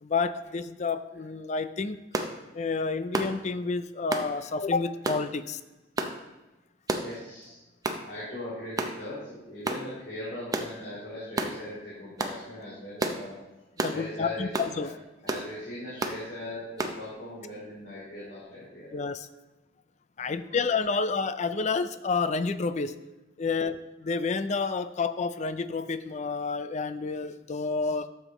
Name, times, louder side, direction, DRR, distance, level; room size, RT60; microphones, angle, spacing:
voice 1, 0.0-2.0 2.5-5.6 13.8-14.9 18.9-19.3 20.2-22.9 23.4-28.1, left 4 dB, 40° left, 13 dB, 0.4 m, -29 dB
sound 1, 2.1-2.3 3.1-3.4 4.1-4.3 5.0-5.2 6.0-6.2 6.9-7.1 7.8-8.0 8.8-9.0 9.6-9.8 10.5-10.7 11.4-11.5 12.2-12.4 13.0-13.2 13.8-14.0 14.5-14.7 15.3-15.5 16.0-16.2 16.8-17.0, right 2 dB, 20° right, 0.6 m, -30 dB
voice 2, 6.9-7.6 8.0-13.4 13.8-14.5 14.8-14.9 15.2-18.9 20.2-20.6, left 1 dB, 65° left, -9 dB, 3.2 m, -40 dB
12.0 x 7.0 x 3.0 m, 1.1 s
head